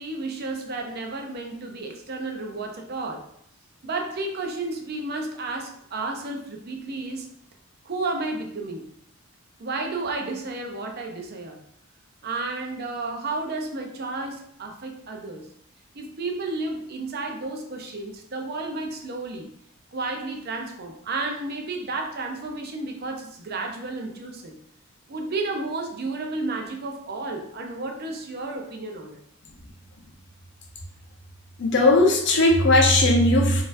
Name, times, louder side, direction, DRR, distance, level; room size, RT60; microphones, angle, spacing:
voice 1, 0.0-3.2 3.8-7.3 7.8-8.9 9.6-11.6 12.2-15.5 15.9-19.5 19.9-24.6 25.1-29.2, right 3 dB, 50° right, 2 dB, 0.5 m, -32 dB
voice 2, 31.6-33.6, left 2 dB, 55° left, 0 dB, 0.7 m, -18 dB
4.1 x 2.5 x 2.5 m, 0.69 s
head